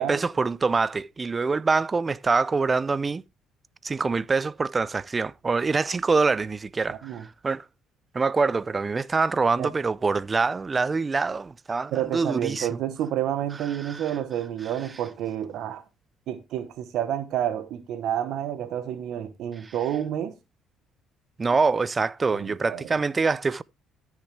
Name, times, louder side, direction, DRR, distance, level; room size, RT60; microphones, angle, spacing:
voice 1, 0.0-3.2 3.8-7.6 8.1-12.8 13.6-14.2 14.6-14.7 19.6-19.7 21.4-23.6, right 4 dB, 30° right, 0.5 m, -25 dB
voice 2, 6.9-7.2 9.6-9.7 11.9-15.8 16.3-20.3 22.3-22.9, right 11 dB, 70° right, 1.0 m, -29 dB
13.5 x 6.4 x 3.3 m
supercardioid pair, 80°, 0 cm